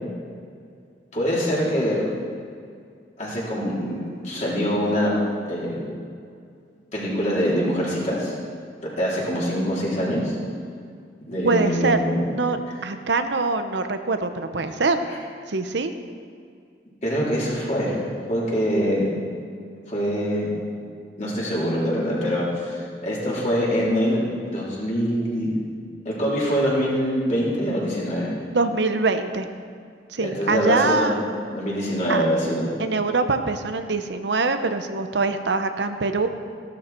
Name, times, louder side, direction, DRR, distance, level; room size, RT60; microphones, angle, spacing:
voice 1, 1.1-2.0 3.2-5.1 5.5-5.8 6.9-8.3 9.0-10.3 11.3-12.2 17.0-18.0 18.3-19.1 19.9-20.5 21.2-25.5 26.1-28.3 30.2-31.2 31.5-32.7, equal, 40° left, -6 dB, 4.0 m, -24 dB
voice 2, 11.4-12.0 12.3-15.0 15.5-15.9 28.5-29.5 30.1-31.2 32.1-32.2 32.8-36.3, right 3 dB, 70° right, 8 dB, 0.8 m, -23 dB
15.0 x 12.5 x 4.5 m, 2.3 s
head